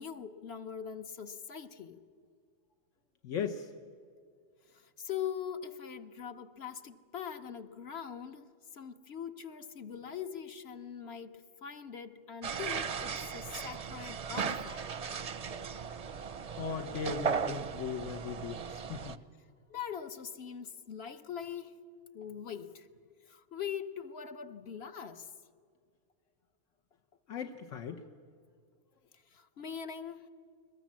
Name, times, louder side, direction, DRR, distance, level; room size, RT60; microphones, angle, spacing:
voice 1, 0.0-2.0 4.7-14.8 19.7-21.8 22.1-22.9 23.3-25.3 29.3-30.3, left 8 dB, 60° left, 1.1 m, -42 dB
voice 2, 3.2-3.7 16.6-19.2 27.3-28.0, left 6 dB, 85° left, 1.2 m, -38 dB
sound 1, 12.4-19.1, right 6 dB, 40° right, 0.6 m, -37 dB
22.0 x 21.0 x 7.4 m
omnidirectional pair, 1.3 m